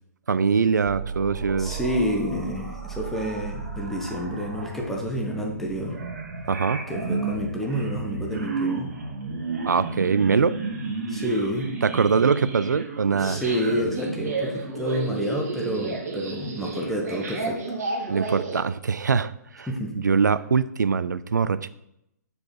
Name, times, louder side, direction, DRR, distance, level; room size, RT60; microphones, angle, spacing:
voice 1, 0.3-1.8 6.5-6.8 9.7-10.6 11.8-13.4 18.1-19.7 20.0-21.7, right 5 dB, 75° right, 15 dB, 0.4 m, -23 dB
sound 1, 0.8-18.6, right 3 dB, 55° right, 1.9 m, -32 dB
voice 2, 1.6-6.0 6.9-8.9 11.1-11.7 13.2-17.6 19.7-19.9, equal, 5° left, 0 dB, 1.0 m, -29 dB
6.6 x 4.8 x 3.9 m, 0.81 s
figure-of-eight pair, 125°, 10 cm